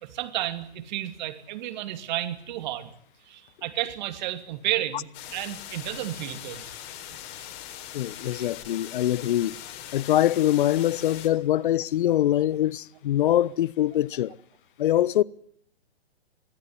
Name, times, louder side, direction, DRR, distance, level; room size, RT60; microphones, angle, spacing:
voice 1, 0.0-2.9 3.3-6.9 8.2-8.5, right 13 dB, 45° right, 2.8 m, -32 dB
sound 1, 5.1-11.3, left 11 dB, 30° left, 4.2 m, -41 dB
voice 2, 7.9-9.5 9.9-14.4 14.8-15.2, left 12 dB, 50° left, 0.9 m, -23 dB
24.5 x 17.0 x 9.8 m
hypercardioid pair, 125°, 32 cm